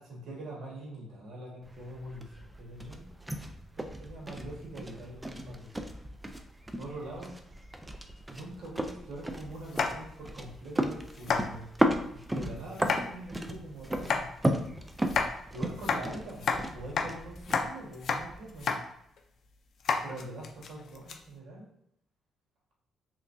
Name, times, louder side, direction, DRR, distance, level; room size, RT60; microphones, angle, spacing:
voice 1, 0.0-3.0 3.7-5.7 6.8-7.3 8.3-11.7 12.3-14.2 15.5-18.7 20.0-21.7, right 1 dB, 70° right, -3 dB, 1.4 m, -43 dB
sound 1, 1.6-18.6, right 1 dB, 10° right, 0.4 m, -35 dB
sound 2, 9.7-10.3 10.7-10.8 11.2-11.4 12.7-13.0 13.9-14.2 15.0-15.3 15.8-16.6 17.0-17.1 17.4-17.7 17.9-18.2 18.5-18.8 19.2-19.3 19.8-21.2, left 5 dB, 60° left, 0.5 m, -30 dB
3.4 x 3.0 x 2.6 m, 0.73 s
cardioid pair, 90°, 0 cm